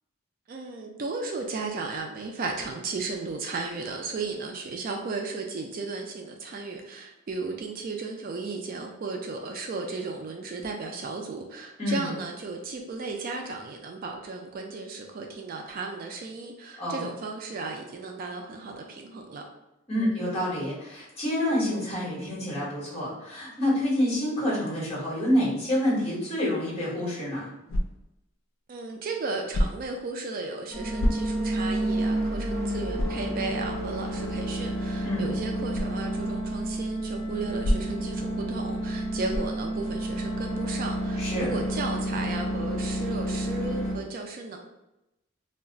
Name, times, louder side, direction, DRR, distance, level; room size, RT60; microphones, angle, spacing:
voice 1, 0.5-19.4 28.7-44.6, right 3 dB, 45° right, 2 dB, 0.3 m, -35 dB
voice 2, 11.8-12.1 16.8-17.0 19.9-27.5 35.0-35.3 41.2-41.5, left 1 dB, 30° left, -7 dB, 1.2 m, -27 dB
sound 1, 27.7-28.2 29.5-30.0 31.0-31.6 32.1-32.2 32.9-33.3 35.7-36.0 37.6-38.1 39.3-39.6, equal, 75° left, 0.4 m, -27 dB
sound 2, 30.7-43.9, right 1 dB, 15° left, 0.7 m, -30 dB
2.3 x 2.2 x 3.8 m, 0.92 s
head